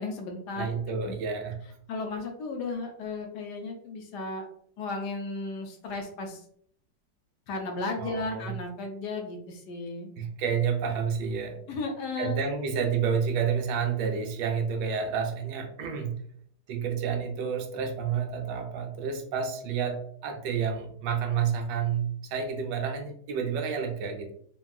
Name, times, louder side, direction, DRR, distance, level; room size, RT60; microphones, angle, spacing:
voice 1, 0.0-1.2 1.9-4.5 4.8-6.4 7.5-10.1 11.7-12.4, left 3 dB, 75° left, 3 dB, 1.1 m, -35 dB
voice 2, 0.6-1.6 8.0-8.5 10.2-11.6 12.2-16.1 16.7-24.3, right 6 dB, 80° right, 4 dB, 1.2 m, -30 dB
3.5 x 2.2 x 2.3 m, 0.63 s
omnidirectional pair, 1.9 m